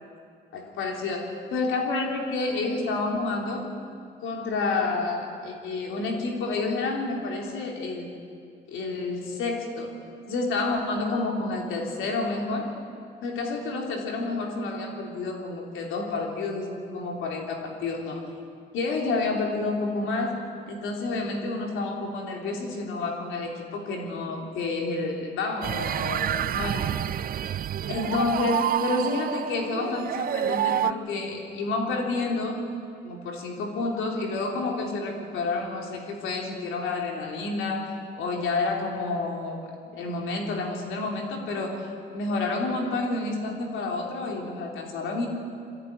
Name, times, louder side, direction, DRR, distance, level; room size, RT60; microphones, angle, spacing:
voice 1, 0.5-3.7 4.2-8.1 8.7-9.9 10.3-12.8 13.2-18.2 18.7-20.4 20.7-26.9 27.9-32.6 33.0-45.3, left 3 dB, 85° left, 1 dB, 3.5 m, -29 dB
sound 1, 25.6-30.9, right 10 dB, 45° right, 0.5 m, -28 dB
23.5 x 15.0 x 9.6 m, 2.4 s
cardioid pair, 90°, 20 cm